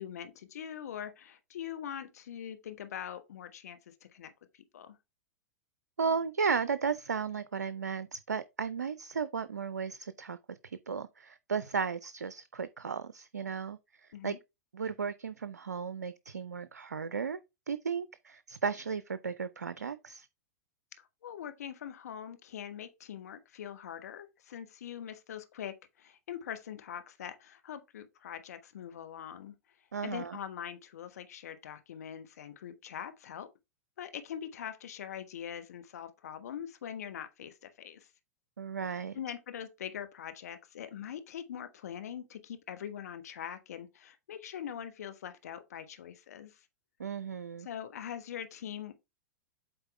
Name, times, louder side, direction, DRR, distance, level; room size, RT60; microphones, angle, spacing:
voice 1, 0.0-3.8 4.1-5.0 14.1-14.4 21.2-29.5 30.0-33.5 34.0-38.1 39.1-46.6 47.6-48.9, left 9 dB, 70° left, 1.1 m, -43 dB
voice 2, 6.0-14.3 14.7-17.4 17.7-20.3 29.9-30.4 38.6-39.2 47.0-47.7, right 6 dB, 90° right, 0.4 m, -35 dB
8.0 x 4.2 x 3.2 m
hypercardioid pair, 100°, 9 cm